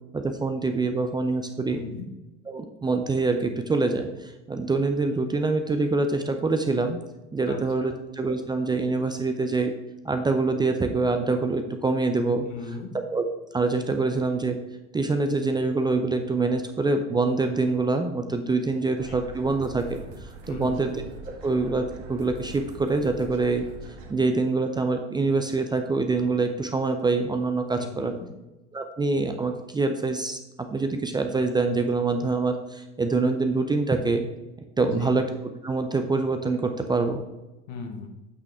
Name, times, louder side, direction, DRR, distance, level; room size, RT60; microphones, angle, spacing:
voice 1, 0.1-1.8 2.5-7.0 7.3-9.7 10.0-12.4 13.1-13.3 13.5-14.6 14.9-21.0 21.4-23.6 24.1-28.1 28.7-30.4 30.7-34.2 34.8-35.3 35.6-37.2, right 3 dB, 10° right, 6 dB, 0.6 m, -25 dB
voice 2, 1.7-2.1 7.5-7.9 12.4-12.9 19.1-19.2 20.5-20.8 27.8-28.3 34.8-35.1 37.7-38.1, left 4 dB, 55° left, 4 dB, 1.7 m, -37 dB
sound 1, 19.0-24.1, right 1 dB, 55° right, 2.0 m, -43 dB
8.6 x 5.9 x 3.6 m, 1.0 s
hypercardioid pair, 85°, 34 cm